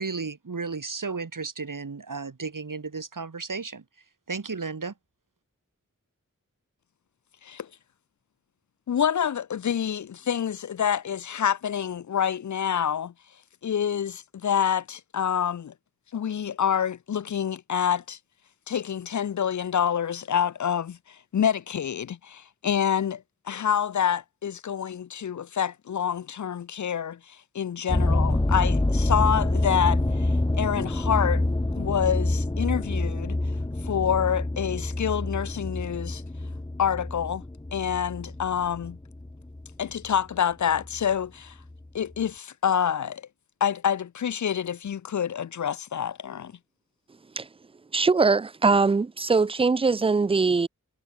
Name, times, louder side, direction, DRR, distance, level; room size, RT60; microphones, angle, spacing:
voice 1, 0.0-3.8 4.3-4.9, right 4 dB, 80° right, 2.1 m, -33 dB
voice 2, 8.9-13.1 13.6-15.7 16.1-18.2 18.7-31.4 31.8-33.4 33.8-36.2 36.8-37.4 37.7-39.0 39.8-41.5 41.9-43.2 43.6-46.5, left 8 dB, 65° left, 0.5 m, -27 dB
sound 1, 27.9-40.2 40.7-41.1 41.7-41.8 42.1-42.2, left 2 dB, 15° left, 0.9 m, -27 dB
voice 3, 47.9-50.7, right 4 dB, 20° right, 0.3 m, -22 dB
wide cardioid pair, 40°, 32 cm